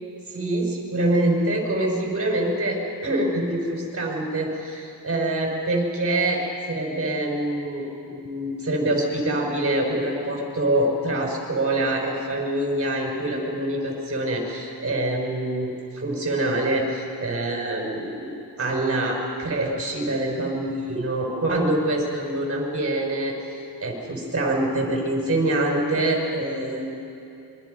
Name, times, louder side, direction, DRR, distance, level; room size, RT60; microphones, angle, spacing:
voice 1, 0.3-18.3 18.6-23.3 23.8-26.9, right 1 dB, 35° right, 0 dB, 5.6 m, -25 dB
26.5 x 24.0 x 5.4 m, 2.7 s
wide cardioid pair, 135°, 42 cm